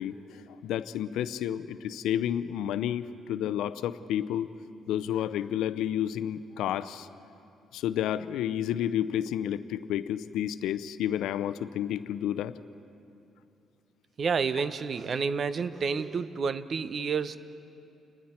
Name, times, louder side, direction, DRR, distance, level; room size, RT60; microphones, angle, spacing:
voice 1, 0.0-4.5 4.9-7.1 7.7-12.5, left 10 dB, 85° left, 14 dB, 0.6 m, -31 dB
voice 2, 14.2-17.4, right 5 dB, 50° right, 14 dB, 0.7 m, -29 dB
29.0 x 20.0 x 4.4 m, 2.7 s
cardioid pair, 90°, 0 cm